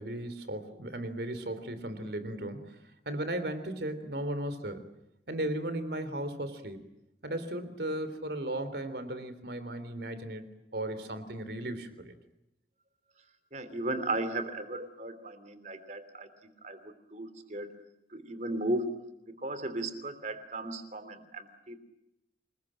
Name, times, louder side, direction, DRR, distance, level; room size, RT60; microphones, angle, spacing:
voice 1, 0.0-2.8 3.1-4.9 5.3-6.8 7.2-10.5 10.7-12.1, right 1 dB, 70° right, 12 dB, 3.6 m, -36 dB
voice 2, 13.5-17.7 18.1-19.0 19.4-21.8, right 2 dB, 40° right, 11 dB, 3.1 m, -36 dB
28.0 x 21.5 x 9.0 m, 0.86 s
head